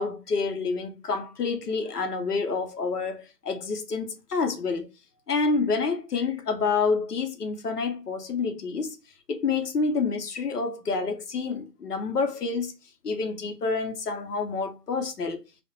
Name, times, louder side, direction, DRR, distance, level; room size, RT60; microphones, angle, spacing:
voice 1, 0.0-4.9 5.3-9.0 9.3-12.7 13.0-15.4, left 4 dB, 70° left, 0.8 m, -28 dB
2.5 x 2.1 x 2.5 m
figure-of-eight pair, 155°, 48 cm